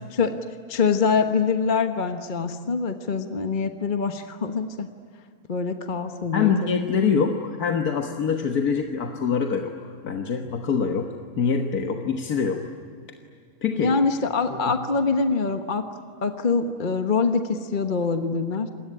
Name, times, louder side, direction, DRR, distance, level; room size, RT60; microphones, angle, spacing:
voice 1, 0.7-4.9 5.5-6.9 13.8-15.8 16.2-18.7, left 5 dB, 35° left, 7 dB, 1.3 m, -24 dB
voice 2, 6.3-11.1 11.4-12.7 13.6-14.0 14.5-14.8, left 6 dB, 80° left, 4 dB, 1.9 m, -25 dB
27.0 x 21.0 x 9.9 m, 2.2 s
omnidirectional pair, 1.6 m